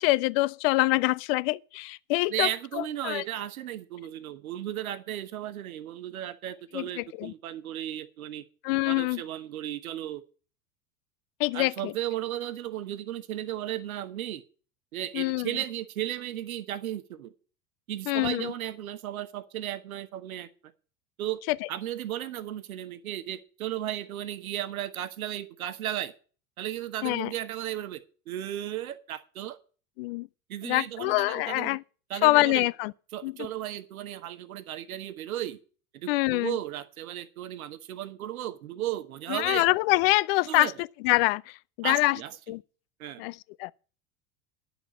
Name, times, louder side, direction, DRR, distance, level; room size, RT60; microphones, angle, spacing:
voice 1, 0.0-2.5 2.8-3.2 6.7-7.3 8.6-9.2 11.4-11.9 15.1-15.6 18.1-18.5 21.5-21.6 27.0-27.3 30.0-30.3 30.6-31.8 32.2-32.9 33.2-33.5 36.1-36.6 39.3-40.7 41.0-42.2 42.5-42.6 43.2-43.7, left 21 dB, 45° left, 0.5 m, -25 dB
voice 2, 2.3-8.4 8.8-10.2 11.5-14.4 14.9-17.3 17.9-20.5 21.2-21.4 21.7-26.1 26.6-29.6 30.5-31.8 32.1-32.7 33.1-35.6 35.9-39.7 40.5-40.7 41.8-42.3 43.0-43.2, right 12 dB, 70° right, 1.2 m, -35 dB
10.5 x 7.0 x 7.2 m
figure-of-eight pair, 80°, 44 cm